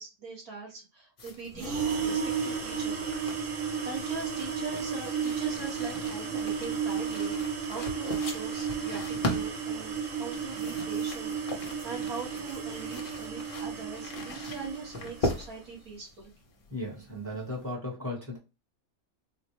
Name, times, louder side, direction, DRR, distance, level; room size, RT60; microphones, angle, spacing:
voice 1, 0.0-1.7 2.0-3.1 3.5-16.3, right 4 dB, 90° right, -2 dB, 2.0 m, -42 dB
sound 1, 1.2-17.7, left 1 dB, 45° left, 0.9 m, -40 dB
sound 2, 1.5-15.5, right 6 dB, 65° right, 1.3 m, -33 dB
voice 2, 16.7-18.4, left 1 dB, 10° left, -2 dB, 1.0 m, -36 dB
3.9 x 2.2 x 2.9 m, 0.28 s
omnidirectional pair, 1.5 m